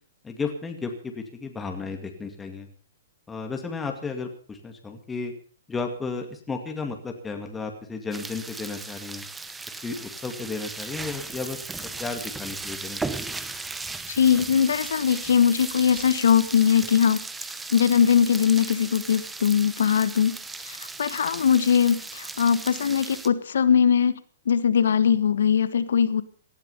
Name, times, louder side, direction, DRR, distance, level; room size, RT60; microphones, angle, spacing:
voice 1, 0.2-2.7 3.3-5.3 5.7-9.2 9.8-13.4, left 4 dB, 10° left, 3 dB, 2.2 m, -33 dB
sound 1, 8.1-23.3, right 3 dB, 10° right, 1.0 m, -36 dB
voice 2, 14.1-17.2 17.7-20.4 20.7-24.2 24.4-26.2, left 7 dB, 75° left, 14 dB, 1.4 m, -21 dB
18.0 x 12.5 x 5.6 m, 0.43 s
hypercardioid pair, 140°, 0 cm